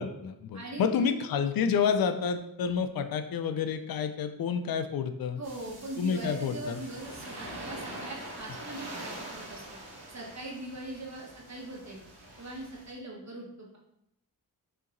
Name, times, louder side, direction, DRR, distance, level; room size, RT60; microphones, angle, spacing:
voice 1, 0.0-5.4 6.0-6.8, left 6 dB, 65° left, 8 dB, 0.5 m, -29 dB
voice 2, 0.5-1.3 5.4-9.6 10.1-12.0 12.4-13.8, right 2 dB, 45° right, -2 dB, 1.3 m, -41 dB
sound 1, 5.4-12.9, right 1 dB, 80° right, 1.5 m, -44 dB
5.6 x 2.9 x 2.6 m, 0.79 s
cardioid pair, 50°, 38 cm